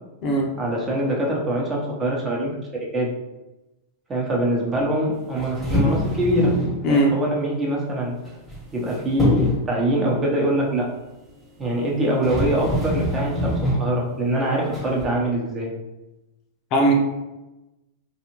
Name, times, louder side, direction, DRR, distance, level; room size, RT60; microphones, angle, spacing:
voice 1, 0.6-2.5 2.9-3.1 4.1-6.5 6.9-8.2 8.7-10.9 11.6-15.7, right 1 dB, 20° right, -3 dB, 0.8 m, -24 dB
sound 1, 5.4-6.8 8.3-8.9 9.2-9.7 11.7-11.8 12.2-13.9 14.7-15.1, left 1 dB, 5° right, 1.1 m, -23 dB
voice 2, 6.8-7.1 16.7-16.9, right 1 dB, 45° left, 0 dB, 0.6 m, -18 dB
2.6 x 2.4 x 2.9 m, 1.0 s
hypercardioid pair, 120°, 0 cm